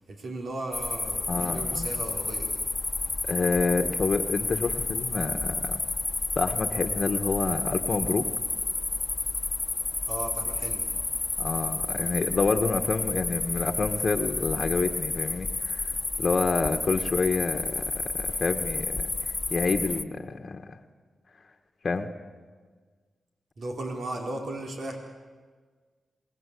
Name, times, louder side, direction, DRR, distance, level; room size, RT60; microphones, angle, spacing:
voice 1, 0.1-2.6 10.0-10.9 23.6-25.0, right 2 dB, 70° right, 1 dB, 4.5 m, -36 dB
sound 1, 0.7-20.0, left 3 dB, 30° left, 1.3 m, -31 dB
voice 2, 1.3-1.9 3.2-5.8 6.4-8.3 11.4-15.9 16.2-20.8 21.8-22.1, left 4 dB, 55° left, 5 dB, 1.4 m, -28 dB
27.5 x 20.5 x 8.4 m, 1.5 s
cardioid pair, 55°, 0 cm